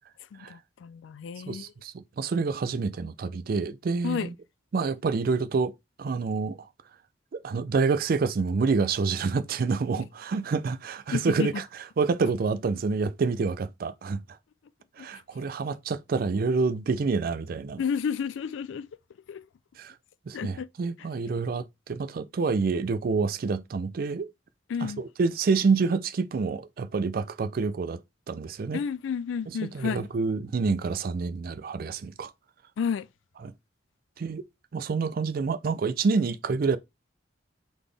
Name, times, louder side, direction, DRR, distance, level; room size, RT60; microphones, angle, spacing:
voice 1, 0.3-1.7 4.0-4.3 11.1-11.6 15.0-15.1 17.8-18.9 19.3-19.4 20.3-20.7 24.7-25.0 28.7-30.1 32.8-33.1, left 6 dB, 85° left, 0.3 m, -31 dB
voice 2, 1.5-4.3 4.7-5.7 6.0-6.6 7.3-11.6 12.0-14.2 15.0-17.8 19.8-19.9 20.3-24.3 24.8-28.0 28.3-28.8 29.5-32.3 33.4-33.5 34.2-34.4 34.7-36.8, right 4 dB, 50° right, 0.4 m, -27 dB
4.0 x 3.5 x 3.3 m
head